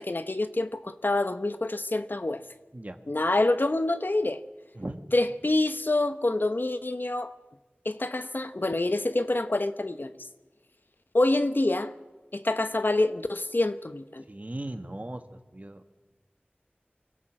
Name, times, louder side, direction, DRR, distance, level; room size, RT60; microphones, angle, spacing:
voice 1, 0.0-2.4 3.1-4.4 5.1-7.3 7.8-10.1 11.1-11.9 12.3-14.2, left 2 dB, 55° left, 0.9 m, -26 dB
voice 2, 14.3-15.2 15.5-15.9, right 1 dB, 40° right, 1.6 m, -37 dB
24.5 x 16.5 x 7.6 m
wide cardioid pair, 45°, 4 cm